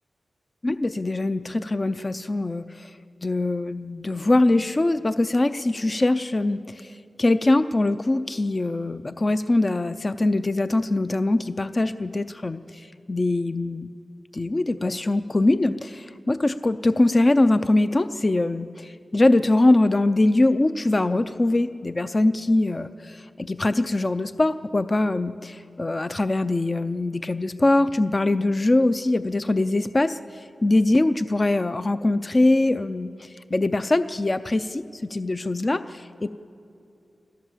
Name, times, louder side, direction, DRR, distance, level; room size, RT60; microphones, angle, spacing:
voice 1, 0.6-2.9 3.2-13.9 14.3-36.3, left 2 dB, 30° left, 11 dB, 0.5 m, -22 dB
27.0 x 15.5 x 7.3 m, 2.6 s
wide cardioid pair, 120°, 0 cm